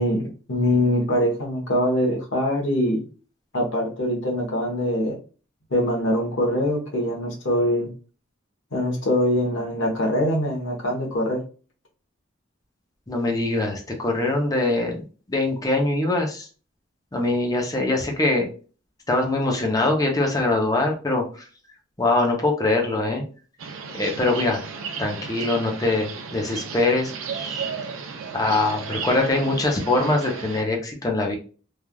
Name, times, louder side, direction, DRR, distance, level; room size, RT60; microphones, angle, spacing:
voice 1, 0.0-3.0 3.5-5.2 5.7-7.9 8.7-11.4, left 1 dB, 70° left, 0 dB, 1.0 m, -23 dB
voice 2, 13.1-16.5 17.1-18.5 19.1-21.4 22.0-23.2 23.9-24.6 25.0-27.7 28.3-31.4, left 2 dB, 20° left, 1 dB, 0.6 m, -23 dB
sound 1, 23.6-30.6, right 6 dB, 85° right, 0.5 m, -34 dB
3.2 x 2.4 x 2.2 m, 0.37 s
head